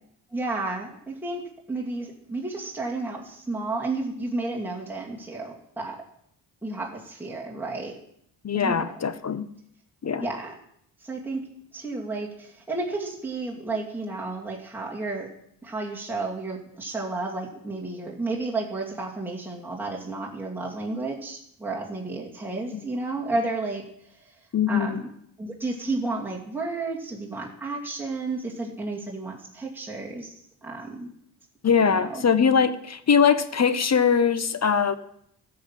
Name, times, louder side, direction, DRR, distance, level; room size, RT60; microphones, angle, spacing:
voice 1, 0.3-6.0 6.6-8.0 8.5-8.8 10.2-10.5 11.0-11.4 11.7-15.3 15.6-23.8 24.7-25.1 25.4-30.3 30.6-31.1 31.8-32.2, right 3 dB, 5° right, -4 dB, 2.6 m, -32 dB
voice 2, 8.4-9.5 10.0-10.3 22.7-22.8 24.5-25.0 31.6-34.9, left 6 dB, 40° left, 13 dB, 0.9 m, -22 dB
13.0 x 5.8 x 7.5 m, 0.70 s
cardioid pair, 70°, 41 cm